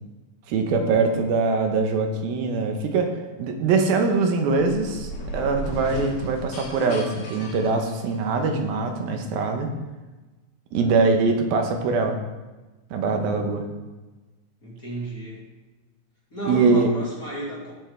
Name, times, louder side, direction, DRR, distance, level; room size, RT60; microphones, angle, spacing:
voice 1, 0.5-9.7 10.7-12.2 12.9-13.6 16.5-16.9, right 4 dB, 80° right, 4 dB, 2.8 m, -23 dB
sound 1, 4.4-8.4, equal, 60° left, 3.2 m, -35 dB
voice 2, 14.6-15.4 16.3-17.7, right 1 dB, 25° left, -6 dB, 2.5 m, -33 dB
17.5 x 7.2 x 3.4 m, 1.2 s
omnidirectional pair, 4.3 m